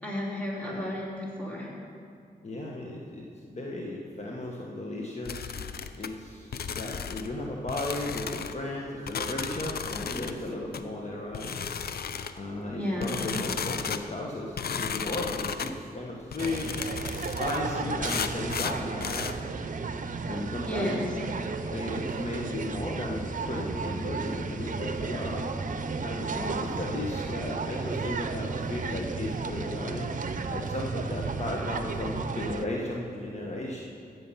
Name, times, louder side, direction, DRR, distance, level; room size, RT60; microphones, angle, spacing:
voice 1, 0.0-1.7 12.7-13.1 20.6-21.1, left 1 dB, 10° left, -4 dB, 3.5 m, -32 dB
voice 2, 2.4-5.5 5.9-11.5 12.4-16.7 17.1-19.3 20.3-21.0 21.7-25.4 26.0-30.1 30.5-33.8, left 2 dB, 45° left, -2 dB, 1.4 m, -35 dB
sound 1, 5.2-6.1 6.5-7.3 7.7-8.5 9.1-10.3 10.7-10.8 11.3-12.4 13.0-14.0 14.6-15.7 16.3-17.6 18.0-19.3, left 7 dB, 70° left, 0.6 m, -34 dB
sound 2, 16.4-32.7, right 4 dB, 55° right, 0.7 m, -33 dB
14.5 x 7.8 x 5.7 m, 2.4 s
cardioid pair, 65°, 16 cm